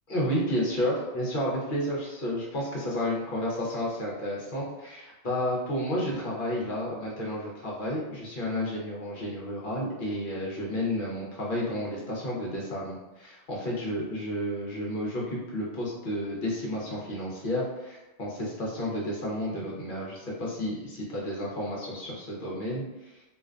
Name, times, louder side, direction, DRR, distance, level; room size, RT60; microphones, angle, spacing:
voice 1, 0.1-23.2, equal, 55° left, -5 dB, 0.7 m, -31 dB
2.5 x 2.2 x 2.4 m, 1.0 s
omnidirectional pair, 1.2 m